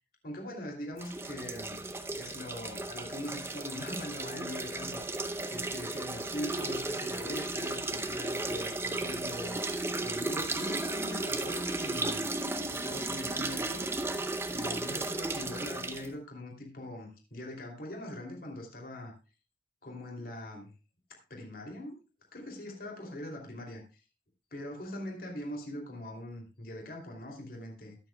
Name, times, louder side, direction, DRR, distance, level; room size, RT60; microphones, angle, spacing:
voice 1, 0.2-1.8 2.1-5.0 5.5-12.3 12.7-13.9 14.5-19.1 19.8-20.7 21.3-22.0 22.3-24.0 24.5-28.0, left 1 dB, 55° left, 1 dB, 2.9 m, -42 dB
sound 1, 1.0-16.1, right 2 dB, 15° right, 0.7 m, -35 dB
21.0 x 7.2 x 2.3 m, 0.32 s
head